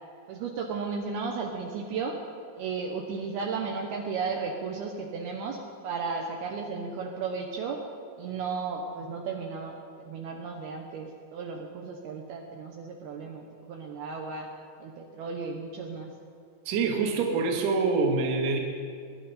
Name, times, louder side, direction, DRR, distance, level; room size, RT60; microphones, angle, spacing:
voice 1, 0.3-2.2 2.6-7.8 8.2-9.8 10.1-14.5 14.8-16.1, right 5 dB, 75° right, 1 dB, 2.6 m, -34 dB
voice 2, 16.7-18.6, right 4 dB, 60° right, 1 dB, 1.9 m, -25 dB
22.5 x 11.0 x 4.2 m, 2.2 s
omnidirectional pair, 5.3 m